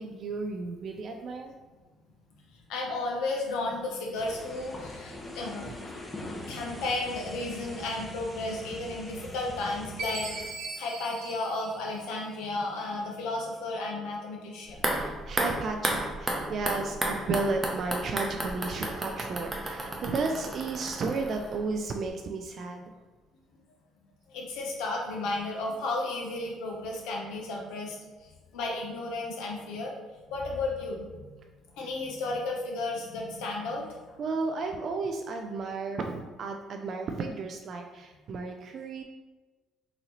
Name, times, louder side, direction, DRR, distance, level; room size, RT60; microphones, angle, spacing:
voice 1, 0.0-1.5 14.9-22.9 34.2-39.0, right 3 dB, 55° right, 4 dB, 0.3 m, -33 dB
voice 2, 2.7-5.7 6.5-14.8 24.3-28.0 28.5-29.9 30.3-31.3 31.8-34.0, left 2 dB, 80° left, -1 dB, 0.8 m, -33 dB
sound 1, 4.1-10.5, left 1 dB, 20° left, 0.7 m, -42 dB
Chime, 10.0-12.5, right 3 dB, 70° right, 1.2 m, -39 dB
sound 2, 14.7-21.8 22.1-22.2, right 1 dB, 20° right, 0.7 m, -33 dB
3.9 x 2.7 x 2.9 m, 1.2 s
supercardioid pair, 75°, 0 cm